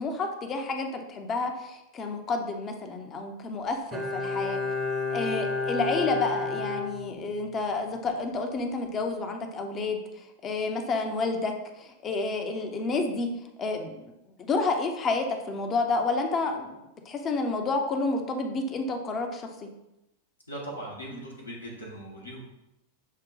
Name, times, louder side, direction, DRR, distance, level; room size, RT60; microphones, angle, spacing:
voice 1, 0.0-4.6 5.1-13.3 13.6-14.0 14.4-16.8 17.1-19.7, left 3 dB, 25° left, 4 dB, 0.6 m, -30 dB
Bowed string instrument, 3.9-7.7 8.0-8.1, left 3 dB, 30° right, 0.7 m, -31 dB
voice 2, 20.5-22.4, right 1 dB, 80° left, -3 dB, 0.9 m, -39 dB
6.2 x 2.2 x 3.9 m, 0.91 s
figure-of-eight pair, 90°, 0 cm